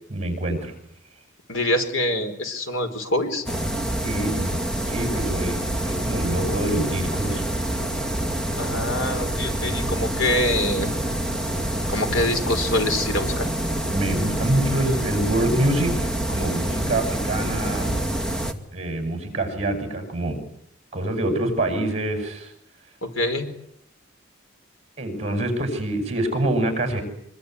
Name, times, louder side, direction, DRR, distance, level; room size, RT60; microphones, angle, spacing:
voice 1, 0.1-0.7 4.0-4.6 4.9-7.6 13.9-18.1 18.7-20.4 20.9-22.5 25.0-27.0, right 1 dB, 35° right, 6 dB, 8.0 m, -26 dB
voice 2, 1.5-3.4 8.6-10.9 11.9-13.5 23.0-23.5, left 1 dB, 75° left, 7 dB, 4.5 m, -25 dB
sound 1, 3.5-18.5, right 1 dB, 5° left, 2.2 m, -26 dB
25.5 x 24.0 x 9.8 m, 0.74 s
head